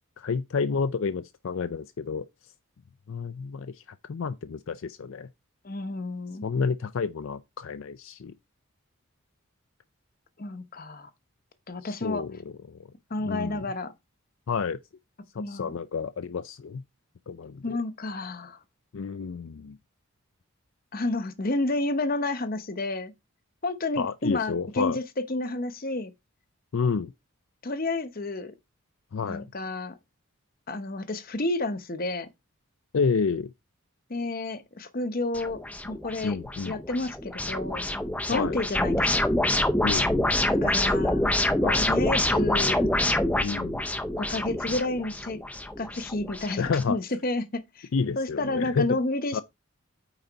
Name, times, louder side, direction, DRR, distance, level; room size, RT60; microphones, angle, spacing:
voice 1, 0.2-2.3 3.1-3.8 4.1-5.3 6.4-8.3 11.8-12.4 12.7-12.8 13.2-13.7 14.5-14.8 15.5-16.8 17.3-17.8 18.9-19.8 24.0-25.0 26.7-27.1 29.1-29.5 32.9-33.5 36.2-36.8 38.3-38.6 39.8-40.3 41.6-41.9 43.4-43.8 46.6-47.0 47.9-49.0 49.3-49.4, left 5 dB, 65° left, 0.4 m, -29 dB
voice 2, 5.6-6.5 10.4-11.1 11.7-12.2 13.1-13.9 15.3-15.7 17.6-18.6 20.9-23.1 23.6-26.1 27.6-28.5 29.2-30.0 30.7-32.3 34.1-36.4 36.7-37.9 38.3-39.3 40.5-41.3 41.8-42.9 44.2-45.4 45.8-47.9 48.2-49.4, left 2 dB, 40° left, 0.8 m, -30 dB
sound 1, 35.3-46.8, left 1 dB, 5° left, 0.5 m, -26 dB
9.0 x 4.0 x 4.5 m
head